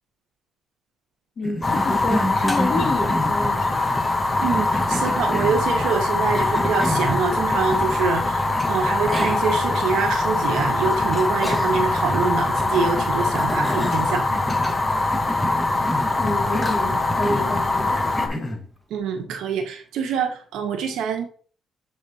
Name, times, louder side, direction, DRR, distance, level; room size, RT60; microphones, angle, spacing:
voice 1, 1.4-4.0 16.2-18.6, left 2 dB, 55° left, 1 dB, 2.0 m, -29 dB
Cough, 1.4-3.6 4.4-5.7 6.3-7.1 8.5-8.6 9.1-9.5 9.9-10.0 11.4-12.0 12.5-12.9 13.4-14.8 15.1-16.2 16.5-16.8 17.2-17.5 18.2-18.6, equal, 5° left, 1.5 m, -29 dB
Fire, 1.6-18.3, left 2 dB, 20° left, 1.1 m, -22 dB
voice 2, 4.4-8.4 8.7-14.4 18.9-21.3, right 6 dB, 85° right, 4 dB, 1.2 m, -25 dB
7.3 x 3.3 x 4.2 m, 0.43 s
cardioid pair, 90°, 0 cm